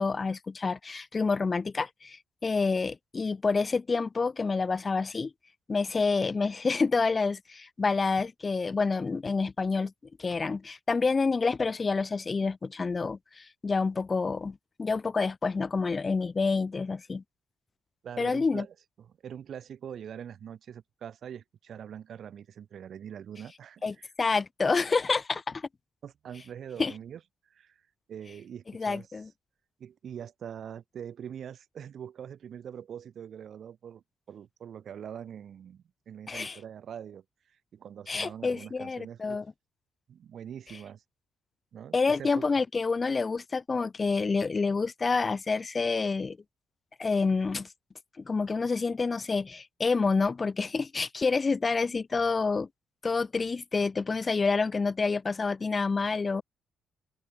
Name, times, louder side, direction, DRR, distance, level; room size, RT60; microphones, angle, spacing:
voice 1, 0.0-5.3 5.7-9.9 10.2-17.2 18.2-18.6 23.8-25.7 26.8-26.9 28.7-29.3 36.3-36.6 38.1-39.4 41.9-46.4 47.0-47.7 48.2-52.7 53.0-56.4, left 4 dB, 30° left, 1.1 m, -28 dB
voice 2, 18.0-24.1 26.0-27.8 28.1-29.1 29.8-39.4 40.1-41.0 41.7-42.5, right 8 dB, 60° right, 4.4 m, -43 dB
open air
cardioid pair, 90°, 0 cm